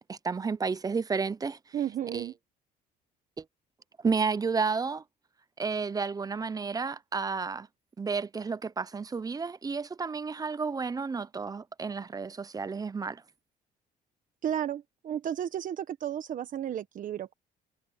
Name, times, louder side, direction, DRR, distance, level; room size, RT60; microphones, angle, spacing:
voice 1, 0.1-1.6 2.1-2.3 3.4-3.5 4.0-5.0 5.6-7.7 8.0-13.2, right 5 dB, 20° right, 0.7 m, -31 dB
voice 2, 1.7-2.3 14.4-17.3, right 10 dB, 50° right, 1.3 m, -33 dB
cardioid pair, 110°, 17 cm